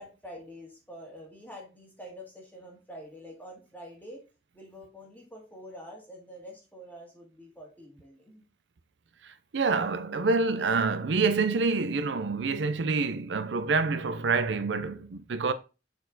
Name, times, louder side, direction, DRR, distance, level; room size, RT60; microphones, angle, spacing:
voice 1, 0.0-4.3 4.5-8.4, equal, 10° left, 2.1 m, -46 dB
voice 2, 9.2-15.5, right 4 dB, 80° right, 0.5 m, -27 dB
6.7 x 4.3 x 4.0 m
head